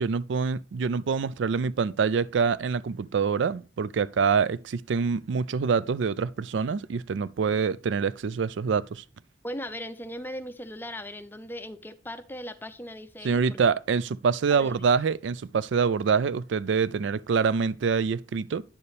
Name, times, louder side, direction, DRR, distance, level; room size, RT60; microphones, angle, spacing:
voice 1, 0.0-9.0 13.2-18.6, right 5 dB, 70° right, 0.4 m, -25 dB
voice 2, 9.4-13.6 14.5-14.8, equal, 10° left, 0.5 m, -38 dB
9.8 x 6.8 x 3.4 m
head